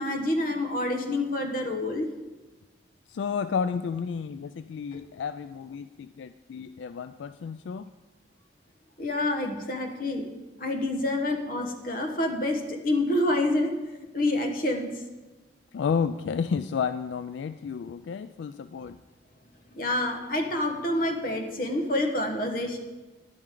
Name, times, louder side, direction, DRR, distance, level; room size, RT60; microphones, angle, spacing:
voice 1, 0.0-2.1 9.0-10.3 10.6-13.7 14.1-14.9 19.8-22.8, left 1 dB, 50° left, 3 dB, 1.3 m, -27 dB
voice 2, 3.1-7.9 15.7-19.0, left 6 dB, 85° left, 12 dB, 0.3 m, -31 dB
11.0 x 11.0 x 3.8 m, 1.2 s
head